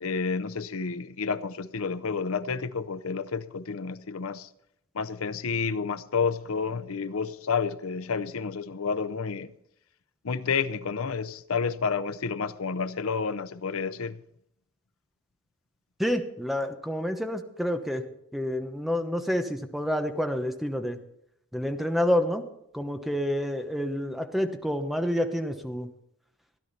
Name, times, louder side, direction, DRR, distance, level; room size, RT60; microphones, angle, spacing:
voice 1, 0.0-4.5 4.9-9.5 10.2-14.2, left 5 dB, 75° left, 0.7 m, -30 dB
voice 2, 16.0-18.0 18.3-21.0 21.5-22.5 22.7-25.9, equal, ahead, 1.0 m, -28 dB
16.5 x 11.0 x 4.2 m
head